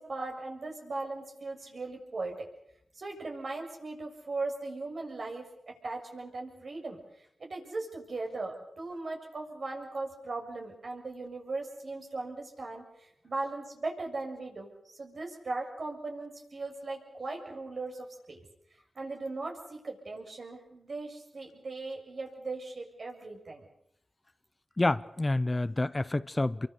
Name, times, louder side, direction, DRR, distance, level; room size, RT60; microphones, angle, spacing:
voice 1, 0.0-2.5 3.0-18.5 19.0-23.7, right 3 dB, 60° right, 7.0 m, -38 dB
voice 2, 24.8-26.7, left 2 dB, 30° left, 0.9 m, -28 dB
27.5 x 23.5 x 6.9 m
cardioid pair, 45°, 0 cm